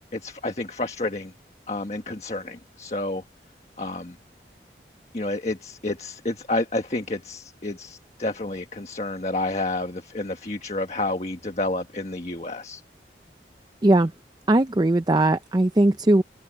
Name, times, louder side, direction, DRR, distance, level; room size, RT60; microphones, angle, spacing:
voice 1, 0.1-1.3 1.7-3.2 3.8-4.2 5.1-12.8, left 2 dB, 40° left, 1.6 m, -30 dB
voice 2, 14.5-16.2, right 1 dB, 25° right, 0.5 m, -19 dB
open air
head